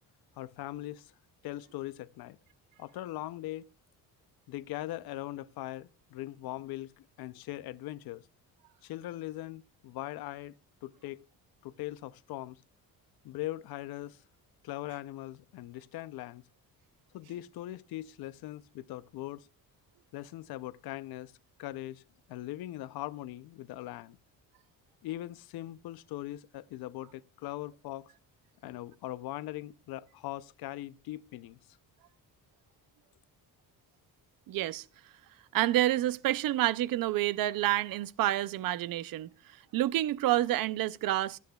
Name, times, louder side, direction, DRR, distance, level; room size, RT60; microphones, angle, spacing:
voice 1, 0.4-1.1 1.4-2.4 2.8-3.7 4.5-8.3 8.8-10.5 10.8-11.2 11.6-12.6 13.2-14.2 14.6-16.4 17.1-19.5 20.1-21.3 21.6-22.0 22.3-24.2 25.0-28.1 28.6-31.6, left 15 dB, 90° left, 0.6 m, -40 dB
voice 2, 34.5-34.8 35.5-39.3 39.7-41.4, right 14 dB, 70° right, 0.5 m, -28 dB
24.5 x 8.4 x 2.3 m
cardioid pair, 175°, 36 cm